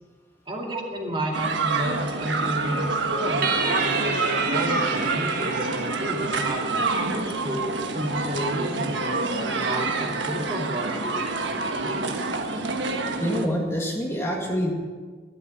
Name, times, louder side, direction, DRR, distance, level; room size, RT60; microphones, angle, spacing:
voice 1, 0.5-6.7 7.0-7.6 7.9-12.2, equal, 30° right, -1 dB, 2.4 m, -31 dB
sound 1, 1.3-13.5, right 3 dB, 90° right, 1.3 m, -27 dB
sound 2, 3.4-7.0, right 4 dB, 50° right, 1.9 m, -30 dB
voice 2, 13.2-14.7, equal, 15° left, -1 dB, 1.9 m, -26 dB
12.0 x 12.0 x 7.0 m, 1.5 s
head